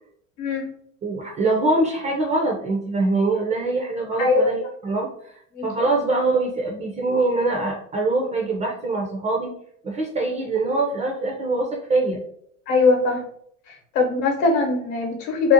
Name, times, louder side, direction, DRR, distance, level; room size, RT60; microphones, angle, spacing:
voice 1, 0.4-0.7 4.2-4.5 5.5-5.6 12.7-13.2 13.7-15.5, left 4 dB, 60° left, 2 dB, 0.9 m, -20 dB
voice 2, 1.0-9.5 9.8-12.2, right 2 dB, 20° right, -1 dB, 0.3 m, -23 dB
2.5 x 2.1 x 2.7 m, 0.65 s
hypercardioid pair, 100°, 38 cm